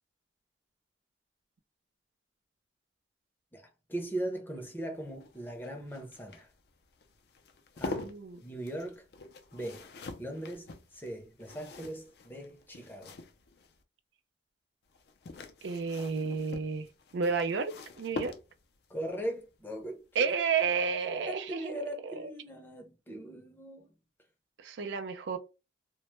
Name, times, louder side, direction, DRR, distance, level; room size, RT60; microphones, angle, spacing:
voice 1, 3.5-6.5 7.8-8.1 8.4-9.1 9.5-9.9 10.2-13.2 18.9-20.2 21.2-23.9, right 1 dB, 10° left, 0.5 m, -39 dB
sound 1, 5.0-13.8 14.9-18.8 20.5-20.8 21.0-21.1, left 3 dB, 60° left, 0.4 m, -45 dB
voice 2, 7.8-8.4 15.6-16.9 17.1-18.4 20.2-22.3 24.6-25.4, right 5 dB, 80° right, 0.4 m, -31 dB
2.2 x 2.0 x 2.9 m
head